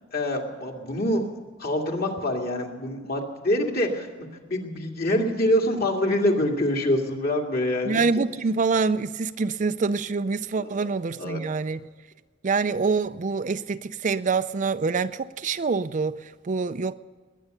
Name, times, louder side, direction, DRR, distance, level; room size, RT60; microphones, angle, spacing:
voice 1, 0.1-1.2 1.6-4.1 4.5-8.2 10.6-10.9 11.2-11.4, left 1 dB, 50° left, 2.2 m, -25 dB
voice 2, 7.9-11.8 12.4-16.9, right 4 dB, 40° right, 0.4 m, -26 dB
21.0 x 9.4 x 6.7 m
head